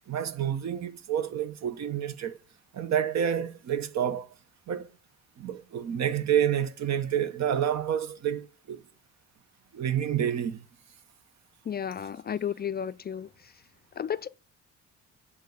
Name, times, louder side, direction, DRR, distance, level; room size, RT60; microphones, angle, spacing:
voice 1, 0.1-2.4 2.7-4.3 4.7-4.9 5.4-8.8 9.7-10.6, right 9 dB, 60° right, 1.0 m, -29 dB
voice 2, 11.7-13.3 14.0-14.3, left 8 dB, 35° left, 0.4 m, -32 dB
10.5 x 3.7 x 7.0 m
cardioid pair, 90°, 30 cm